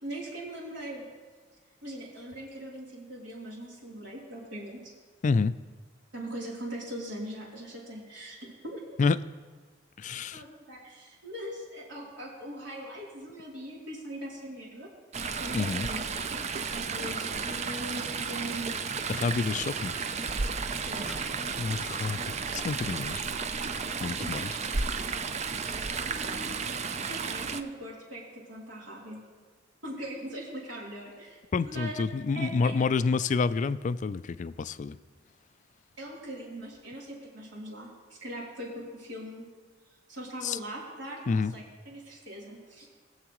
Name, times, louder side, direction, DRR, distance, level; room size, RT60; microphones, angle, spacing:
voice 1, 0.0-1.1 1.8-4.9 6.1-9.0 10.3-14.9 15.3-16.0 16.7-18.8 20.7-21.1 26.1-26.6 27.1-29.2 29.8-31.4 31.7-31.9 32.3-32.7 36.0-39.5 40.1-42.9, right 1 dB, 75° right, -5 dB, 3.3 m, -40 dB
voice 2, 5.2-5.5 9.0-9.2 10.0-10.4 15.5-15.9 19.1-19.9 21.6-22.2 22.5-23.2 24.0-24.6 31.5-35.0 40.4-40.6 41.3-41.5, left 4 dB, 40° left, 15 dB, 0.3 m, -28 dB
Chatter / Stream, 15.1-27.6, right 5 dB, 35° right, 0.5 m, -33 dB
sound 1, 17.6-23.0, equal, ahead, 0.9 m, -51 dB
20.5 x 7.3 x 3.1 m, 1.4 s
head